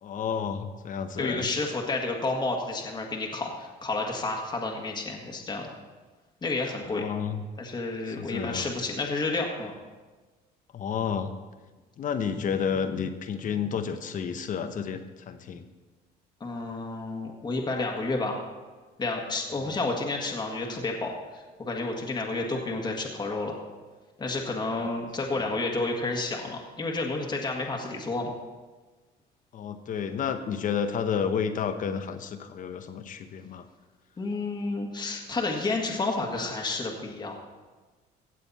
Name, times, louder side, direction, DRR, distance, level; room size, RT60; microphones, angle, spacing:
voice 1, 0.0-1.5 6.9-7.5 8.1-8.7 10.7-11.3 12.0-15.7 19.6-19.7 24.8-24.9 29.5-33.7, left 7 dB, 50° left, 9 dB, 1.0 m, -31 dB
voice 2, 1.2-5.7 6.4-7.0 7.6-9.8 16.4-18.4 19.0-23.6 24.2-28.4 34.2-37.4, left 3 dB, 25° left, 1 dB, 1.7 m, -30 dB
16.0 x 7.7 x 4.2 m, 1.3 s
cardioid pair, 110°, 17 cm